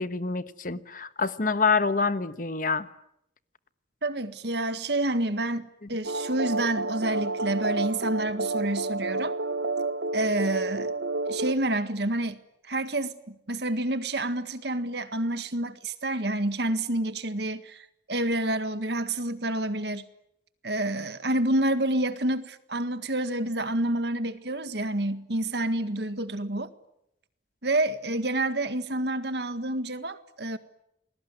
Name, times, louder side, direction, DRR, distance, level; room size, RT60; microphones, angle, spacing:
voice 1, 0.0-2.9, left 4 dB, 45° left, 1.2 m, -26 dB
voice 2, 4.0-9.4 10.1-10.9 11.3-12.4 12.7-20.0 20.6-26.7 27.6-30.6, right 1 dB, 65° right, 1.8 m, -28 dB
sound 1, 6.0-11.5, right 2 dB, 90° right, 1.1 m, -30 dB
29.0 x 21.0 x 9.8 m
head